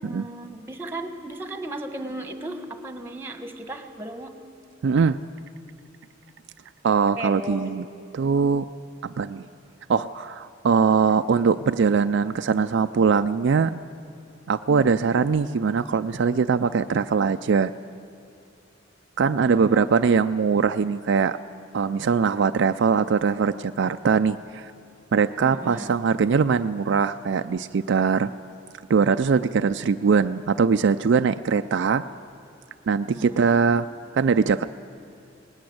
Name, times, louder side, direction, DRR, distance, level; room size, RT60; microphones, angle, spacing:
voice 1, 0.0-4.4 7.2-7.7 19.4-20.2 25.4-26.0 33.1-33.6, right 1 dB, 10° right, 6 dB, 1.4 m, -36 dB
voice 2, 4.8-5.2 6.8-7.8 8.1-8.7 9.0-9.5 9.9-13.8 14.5-17.7 19.2-21.4 21.7-24.7 25.1-28.3 28.9-32.1 32.9-33.9 34.1-34.6, right 5 dB, 65° right, 9 dB, 0.4 m, -21 dB
19.0 x 18.5 x 7.8 m, 2.6 s
head